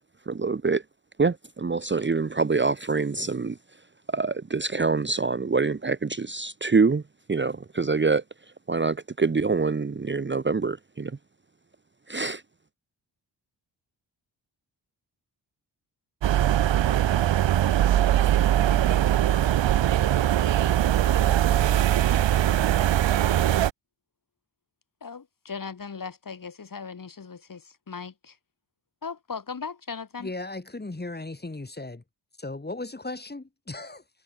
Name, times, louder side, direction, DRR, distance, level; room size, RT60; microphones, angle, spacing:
voice 1, 0.3-0.8 1.2-3.6 4.1-7.0 7.3-8.2 8.7-11.1 12.1-12.4, right 4 dB, 25° right, 1.0 m, -25 dB
sound 1, 16.2-23.7, right 11 dB, 70° right, 1.0 m, -21 dB
voice 2, 25.0-28.4 29.0-30.3, left 5 dB, 45° left, 2.5 m, -38 dB
voice 3, 30.2-32.0 32.4-34.0, left 2 dB, 20° left, 3.7 m, -36 dB
cardioid pair, 55°, 46 cm